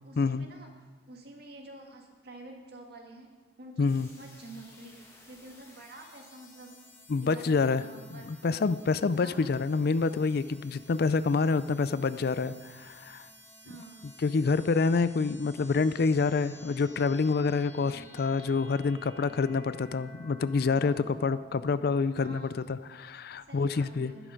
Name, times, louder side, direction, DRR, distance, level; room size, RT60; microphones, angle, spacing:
voice 1, 0.0-0.7 1.1-3.3 3.6-6.8 7.1-8.7 9.2-9.5 13.6-14.0 17.8-18.1 22.2-22.6 22.9-23.0 23.5-24.2, right 1 dB, 55° right, 1 dB, 2.0 m, -49 dB
voice 2, 3.8-4.1 7.1-7.8 8.1-13.3 14.2-24.1, left 4 dB, 55° left, 15 dB, 0.4 m, -27 dB
sound 1, 3.9-21.7, equal, 15° left, 1.9 m, -54 dB
12.0 x 11.0 x 5.2 m, 1.3 s
head